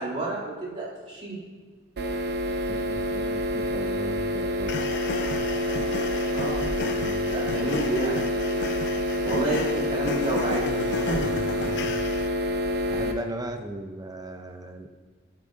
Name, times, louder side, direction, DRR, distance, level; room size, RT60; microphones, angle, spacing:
voice 1, 0.0-1.4 6.3-6.7 7.3-8.2 9.2-11.3, right 2 dB, 35° right, -9 dB, 2.9 m, -30 dB
sound 1, 2.0-13.1, left 1 dB, 55° right, 0.7 m, -27 dB
voice 2, 2.7-4.7 6.8-7.3 11.7-12.0 12.9-14.9, right 1 dB, 20° right, 5 dB, 0.6 m, -37 dB
sound 2, 4.7-12.3, left 6 dB, 55° left, 0.4 m, -34 dB
12.5 x 8.4 x 2.7 m, 1.4 s
head